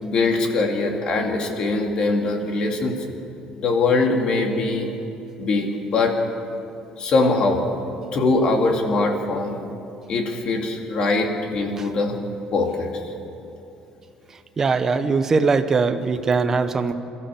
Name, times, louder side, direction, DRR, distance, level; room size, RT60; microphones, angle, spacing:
voice 1, 0.0-2.9 3.6-4.9 5.4-6.1 7.0-7.6 8.1-9.6 10.1-12.2 12.5-12.9, left 3 dB, 40° left, 2 dB, 2.6 m, -22 dB
voice 2, 14.6-16.9, right 4 dB, 20° right, 9 dB, 0.9 m, -20 dB
28.0 x 14.5 x 7.1 m, 2.8 s
cardioid pair, 175°, 2 cm